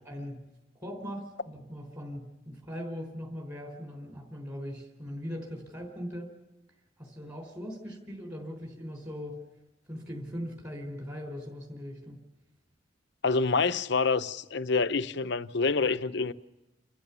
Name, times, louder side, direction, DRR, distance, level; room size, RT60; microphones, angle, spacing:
voice 1, 0.0-0.4 0.8-6.3 7.0-9.4 9.9-12.2, equal, 20° right, 3.7 m, -40 dB
voice 2, 13.2-16.3, left 4 dB, 65° left, 0.8 m, -27 dB
29.0 x 14.0 x 7.0 m
head